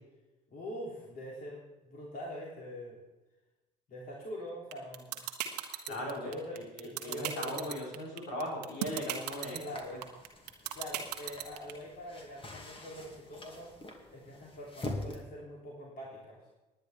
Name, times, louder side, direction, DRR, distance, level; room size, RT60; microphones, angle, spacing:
voice 1, 0.5-3.0 3.9-5.2 5.8-7.7 9.6-10.0 10.7-13.8 14.1-16.4, equal, 40° left, -3 dB, 3.2 m, -44 dB
sound 1, 4.7-11.7, right 12 dB, 75° right, 1.2 m, -35 dB
voice 2, 5.9-9.6, left 1 dB, 60° left, -4 dB, 4.3 m, -38 dB
sound 2, 9.3-15.2, left 2 dB, 25° left, 2.4 m, -45 dB
20.0 x 9.5 x 3.5 m, 1.1 s
figure-of-eight pair, 50°, 21 cm